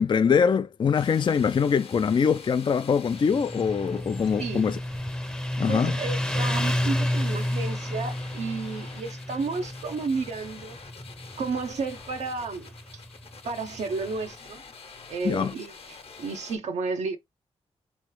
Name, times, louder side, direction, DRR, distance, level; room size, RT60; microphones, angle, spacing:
voice 1, 0.0-4.8 5.6-5.9 15.2-15.5, left 6 dB, 45° left, 0.4 m, -23 dB
sound 1, 0.9-16.6, left 5 dB, 60° left, 1.0 m, -47 dB
Motorcycle, 3.1-14.2, left 1 dB, 5° left, 0.6 m, -31 dB
voice 2, 5.7-10.8 11.4-13.0 13.4-14.6 15.1-17.2, right 4 dB, 80° right, 0.7 m, -32 dB
3.6 x 3.1 x 3.1 m
cardioid pair, 70°, 11 cm